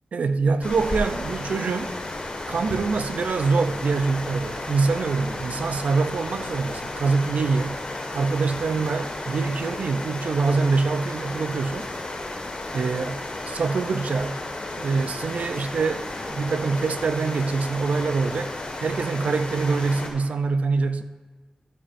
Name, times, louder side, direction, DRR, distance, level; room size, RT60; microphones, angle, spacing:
voice 1, 0.1-1.9 2.5-7.8 8.1-11.9 12.7-14.4 14.7-18.5 18.8-21.0, right 4 dB, 80° right, 10 dB, 0.5 m, -25 dB
sound 1, 0.6-20.1, left 2 dB, 55° left, 1.6 m, -33 dB
14.0 x 8.7 x 2.6 m, 1.3 s
wide cardioid pair, 70°, 2 cm